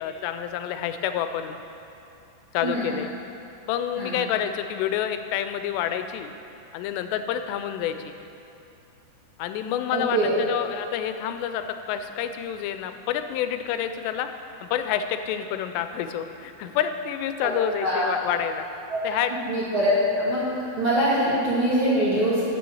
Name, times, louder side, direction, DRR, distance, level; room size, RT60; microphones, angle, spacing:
voice 1, 0.0-1.6 2.5-3.1 3.7-6.3 6.7-8.1 9.4-14.3 14.6-18.7 19.0-19.3, left 9 dB, 90° left, 9 dB, 2.7 m, -28 dB
voice 2, 2.6-2.9 4.0-4.2 9.9-10.3 17.4-17.5 17.8-18.1 18.9-19.0 19.5-20.4 20.8-22.4, right 1 dB, 35° right, -11 dB, 2.6 m, -23 dB
7.0 x 6.9 x 7.7 m, 2.7 s
omnidirectional pair, 4.8 m